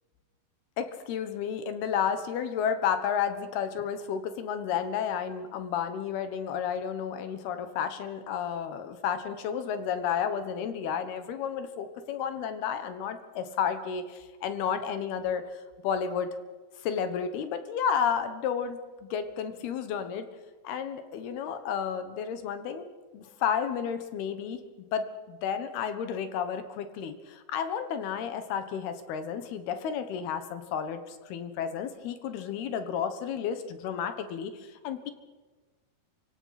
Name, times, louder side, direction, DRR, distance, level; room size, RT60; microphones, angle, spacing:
voice 1, 0.8-15.4 15.8-16.3 16.8-20.3 20.6-22.8 23.1-24.6 24.9-35.1, left 7 dB, 65° left, 9 dB, 2.9 m, -32 dB
30.0 x 17.0 x 5.9 m, 1.3 s
omnidirectional pair, 5.6 m